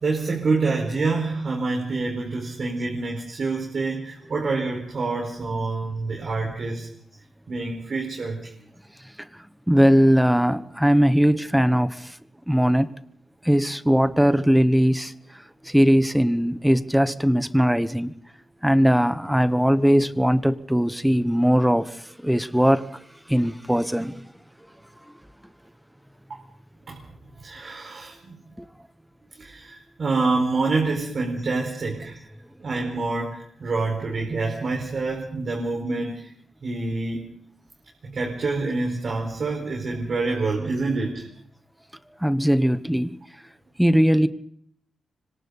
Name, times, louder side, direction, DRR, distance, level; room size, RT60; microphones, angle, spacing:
voice 1, 0.0-6.9 7.5-8.5 26.9-27.0 27.4-28.3 29.4-32.3 32.6-36.3 36.6-37.2 38.0-41.3, right 3 dB, 45° right, 0 dB, 4.7 m, -27 dB
voice 2, 9.7-12.1 12.5-12.9 13.4-15.1 15.7-18.1 18.6-21.9 22.2-22.9 23.3-24.1 28.6-28.7 42.2-43.2 43.8-44.3, equal, ahead, 13 dB, 0.9 m, -19 dB
25.5 x 25.0 x 4.1 m, 0.64 s
wide cardioid pair, 140°, 0 cm